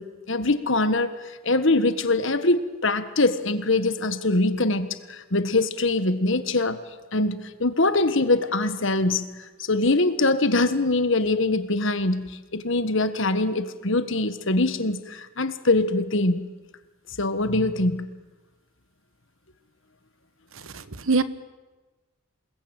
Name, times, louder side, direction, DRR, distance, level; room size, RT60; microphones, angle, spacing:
voice 1, 0.0-6.8 7.1-9.3 9.7-16.4 17.2-18.1, left 2 dB, 60° left, 11 dB, 1.6 m, -23 dB
voice 2, 20.6-21.2, right 4 dB, 65° right, 14 dB, 1.3 m, -24 dB
28.0 x 20.0 x 9.1 m, 1.2 s
head